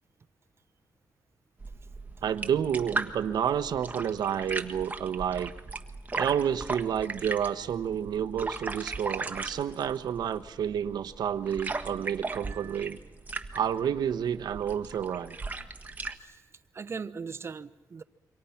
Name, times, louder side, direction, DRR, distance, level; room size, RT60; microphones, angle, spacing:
sound 1, 1.6-16.2, right 3 dB, 25° right, 1.5 m, -38 dB
voice 1, 2.2-5.5 6.1-13.0 13.5-15.4, right 8 dB, 80° right, 9 dB, 1.1 m, -30 dB
voice 2, 12.5-12.9 16.2-16.4 16.7-18.0, right 5 dB, 40° right, 11 dB, 1.0 m, -40 dB
28.0 x 24.5 x 5.8 m, 1.1 s
cardioid pair, 120°, 7 cm